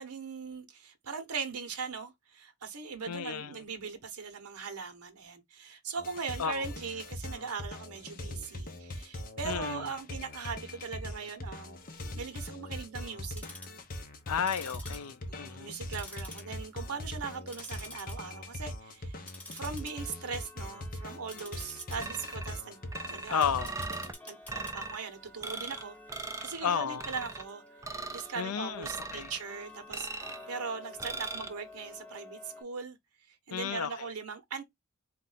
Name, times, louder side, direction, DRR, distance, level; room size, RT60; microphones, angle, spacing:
voice 1, 0.0-11.8 12.2-13.4 15.3-19.2 19.5-22.8 23.1-23.5 24.2-26.0 26.4-27.6 27.9-33.0 33.5-34.6, right 5 dB, 85° right, 1.0 m, -40 dB
voice 2, 3.1-3.6 6.4-6.7 9.4-9.9 14.3-15.8 23.3-23.8 26.6-27.0 28.4-29.3 33.5-34.1, left 7 dB, 85° left, 0.4 m, -33 dB
sound 1, 6.0-24.1, left 1 dB, 40° left, 0.8 m, -42 dB
Tick-tock, 13.2-13.8 14.4-15.7 15.9-16.8 17.1-18.1 18.5-18.8 19.2-32.6, left 1 dB, 5° left, 1.1 m, -50 dB
sound 2, 22.0-22.6 22.9-24.1 24.5-25.0 25.4-25.8 26.1-26.6 27.0-27.4 27.8-28.3 28.8-29.4 29.9-30.4 31.0-31.5, right 3 dB, 15° right, 0.4 m, -39 dB
4.2 x 2.5 x 3.8 m
head